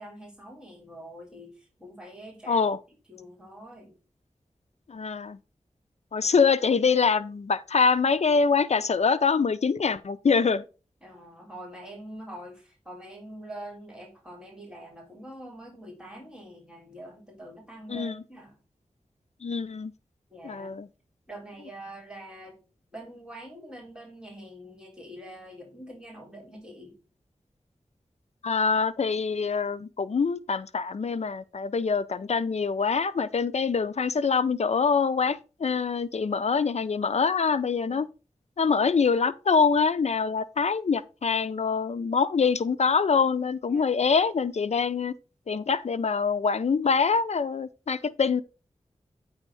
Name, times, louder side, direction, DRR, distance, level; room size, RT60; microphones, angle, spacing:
voice 1, 0.0-2.7 3.1-3.9 11.0-18.6 20.3-20.7 21.3-22.6 22.9-26.9 37.8-38.0 43.7-43.9, right 1 dB, 5° right, 3.8 m, -44 dB
voice 2, 2.5-2.8 4.9-5.4 6.1-10.6 17.9-18.2 19.4-19.9 20.4-20.9 28.4-38.1 38.6-45.1 45.5-48.4, left 5 dB, 65° left, 0.6 m, -24 dB
8.8 x 3.5 x 6.3 m
wide cardioid pair, 65°, 12 cm